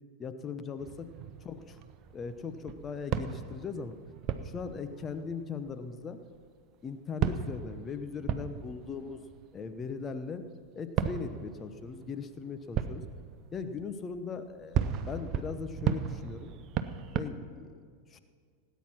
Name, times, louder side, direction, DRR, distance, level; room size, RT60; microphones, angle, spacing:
voice 1, 0.2-1.1 1.4-1.8 2.1-3.9 4.4-6.2 6.8-9.2 9.5-10.4 10.7-13.0 13.5-16.5 17.1-18.2, left 5 dB, 20° left, 10 dB, 0.9 m, -39 dB
sound 1, 0.8-6.4 6.9-7.0 7.2-10.3 11.0-17.2, right 8 dB, 35° right, 0.7 m, -36 dB
17.5 x 9.4 x 6.0 m, 2.1 s
figure-of-eight pair, 90°, 0 cm